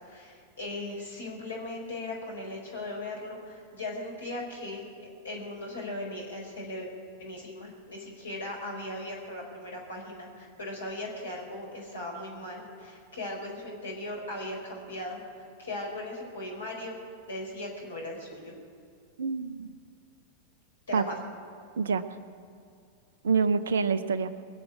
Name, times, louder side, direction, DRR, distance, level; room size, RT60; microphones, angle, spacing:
voice 1, 0.0-4.9 5.2-6.9 7.2-15.2 15.6-17.0 17.3-18.5 20.9-21.2, left 1 dB, 70° left, -1 dB, 4.8 m, -38 dB
voice 2, 19.2-19.7 20.9-21.1 21.8-22.1 23.2-24.3, right 5 dB, 65° right, 13 dB, 0.7 m, -26 dB
22.0 x 7.5 x 8.3 m, 2.4 s
figure-of-eight pair, 90°, 0 cm